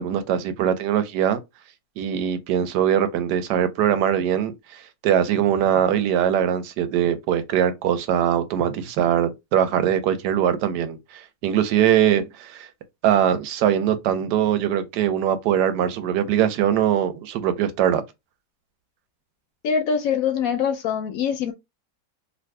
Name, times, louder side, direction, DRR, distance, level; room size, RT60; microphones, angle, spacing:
voice 1, 0.0-1.4 2.0-12.7 13.0-18.0, right 10 dB, 90° right, 1.2 m, -22 dB
voice 2, 19.6-21.5, left 7 dB, 70° left, 0.9 m, -23 dB
2.7 x 2.6 x 3.1 m
omnidirectional pair, 1.7 m